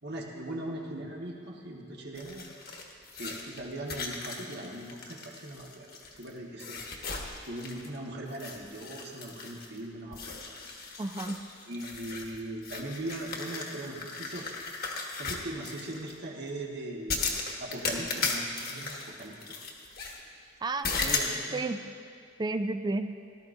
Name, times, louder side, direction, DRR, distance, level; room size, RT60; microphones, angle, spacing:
voice 1, 0.0-2.4 3.2-5.9 6.2-6.8 7.4-10.5 11.7-14.5 15.2-19.6 21.1-21.6, right 1 dB, 60° right, -1 dB, 1.6 m, -40 dB
sound 1, 2.2-6.3 6.6-8.0 8.3-9.8 10.1-16.1 17.1-20.2 20.8-21.4, left 4 dB, 55° left, 1.4 m, -36 dB
voice 2, 11.0-11.4 20.6-21.2 21.5-21.8 22.4-23.1, right 2 dB, 20° right, 9 dB, 0.4 m, -32 dB
18.0 x 12.5 x 2.7 m, 2.3 s
head